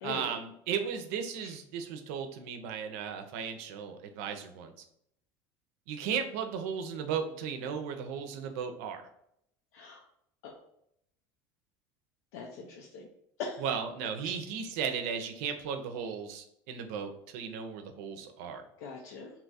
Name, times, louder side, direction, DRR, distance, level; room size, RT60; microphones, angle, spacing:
voice 1, 0.0-4.7 5.9-9.0 13.6-18.6, right 7 dB, 80° right, 6 dB, 0.5 m, -35 dB
voice 2, 12.3-13.1 13.4-13.6 18.8-19.3, left 4 dB, 90° left, 0 dB, 0.5 m, -41 dB
2.8 x 2.3 x 4.0 m, 0.75 s
cardioid pair, 155°, 8 cm